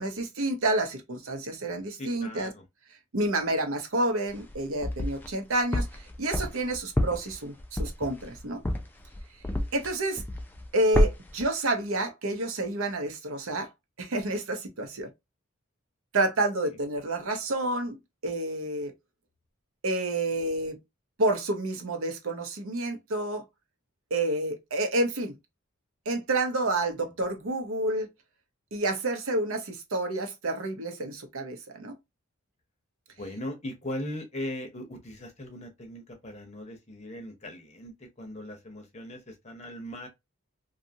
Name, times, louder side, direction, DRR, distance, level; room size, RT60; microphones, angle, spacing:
voice 1, 0.0-2.5 3.1-5.9 6.2-8.6 9.7-10.2 10.7-13.7 14.0-15.1 16.1-18.0 18.2-18.9 19.8-20.8 21.2-23.4 24.1-25.4 26.1-28.1 28.7-32.0, right 2 dB, 75° right, 0.7 m, -29 dB
voice 2, 2.0-2.6 16.7-16.8 33.2-40.1, left 1 dB, 30° left, 0.7 m, -39 dB
sound 1, 4.3-5.3 5.7-9.9 10.2-10.7 10.9-11.4, left 1 dB, 10° left, 0.3 m, -28 dB
2.7 x 2.3 x 2.7 m
head